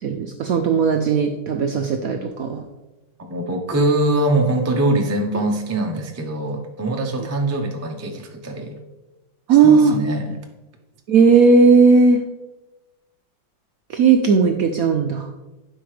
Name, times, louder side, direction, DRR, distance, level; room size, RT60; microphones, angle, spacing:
voice 1, 0.0-2.6 9.5-10.0 11.1-12.2 13.9-15.3, right 5 dB, 70° right, 4 dB, 0.8 m, -16 dB
voice 2, 3.3-8.8 9.6-10.4, right 1 dB, 25° right, 2 dB, 0.3 m, -22 dB
11.5 x 5.1 x 3.3 m, 1.0 s
omnidirectional pair, 2.1 m